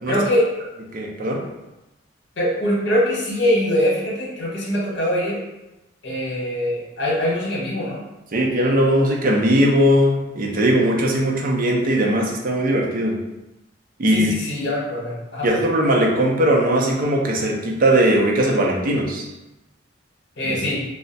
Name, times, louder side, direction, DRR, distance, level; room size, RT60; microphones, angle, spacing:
voice 1, 0.1-0.5 2.4-5.4 6.0-8.0 14.1-15.5 20.4-20.8, equal, 60° left, -5 dB, 1.1 m, -22 dB
voice 2, 0.9-1.5 8.3-13.2 14.0-14.3 15.4-19.3 20.4-20.6, right 1 dB, 45° right, -1 dB, 0.5 m, -19 dB
2.3 x 2.1 x 3.9 m, 0.98 s
head